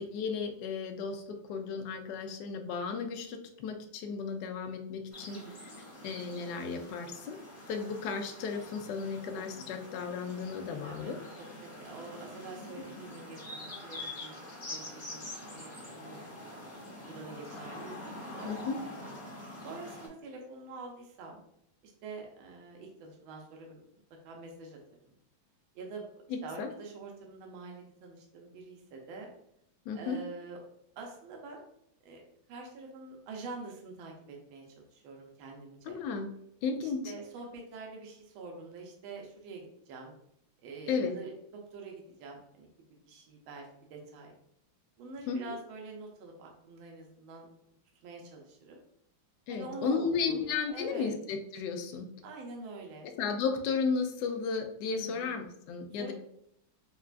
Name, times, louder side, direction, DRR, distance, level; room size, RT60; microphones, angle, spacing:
voice 1, 0.0-5.4 6.0-7.4 7.7-11.2 18.4-18.8 26.3-26.7 29.9-30.2 35.9-36.3 36.6-37.1 40.9-41.1 45.3-45.4 49.5-52.1 53.0-56.1, left 5 dB, 75° left, 4 dB, 1.0 m, -34 dB
sound 1, 5.1-20.1, left 1 dB, 25° left, 1.2 m, -45 dB
voice 2, 10.8-11.1 11.6-14.4 14.7-16.2 17.0-19.1 19.6-21.4 21.8-23.8 24.2-24.8 25.7-26.0 26.4-29.3 29.9-30.7 31.0-31.6 32.0-32.2 32.5-36.0 36.8-40.1 40.6-42.7 43.1-44.3 45.0-47.5 48.0-48.8 49.5-50.4 50.7-51.1 52.2-53.1 54.9-55.3 56.0-56.1, right 3 dB, 75° right, 1 dB, 1.5 m, -46 dB
5.5 x 2.4 x 2.4 m, 0.72 s
omnidirectional pair, 2.3 m